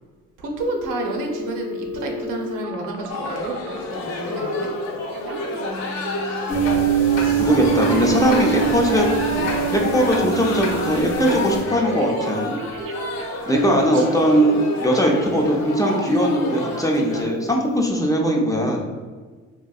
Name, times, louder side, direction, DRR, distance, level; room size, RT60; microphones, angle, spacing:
voice 1, 0.4-5.1 5.5-7.5 13.9-14.6, right 2 dB, 85° right, 1 dB, 0.7 m, -32 dB
Telephone, 0.6-3.9 4.5-4.9 5.1-6.5 6.8-7.2 7.5-10.9 11.3-11.7 12.0-14.0 14.4-15.3 15.6-16.0 16.4-16.8 17.1-17.5 17.9-18.0, right 1 dB, 45° right, 0.4 m, -33 dB
sound 1, 3.1-17.2, left 2 dB, 65° left, 0.8 m, -29 dB
Inside grandfather clock, 6.5-11.6, right 9 dB, 90° left, 1.0 m, -23 dB
voice 2, 7.3-12.5 13.5-18.8, equal, 10° left, 0 dB, 0.5 m, -20 dB
3.8 x 2.6 x 2.3 m, 1.5 s
cardioid pair, 90°, 30 cm